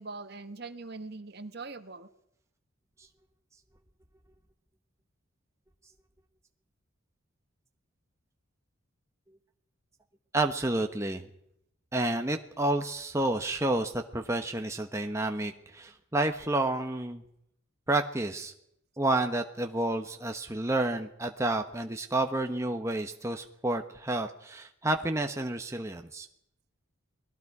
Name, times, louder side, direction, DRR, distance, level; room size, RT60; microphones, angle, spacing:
voice 1, 0.0-2.1, right 3 dB, 50° right, 9 dB, 1.3 m, -42 dB
voice 2, 10.3-11.3 11.9-17.2 17.9-18.5 19.0-26.3, right 2 dB, 15° right, 4 dB, 1.0 m, -30 dB
29.5 x 20.5 x 4.8 m, 0.75 s
head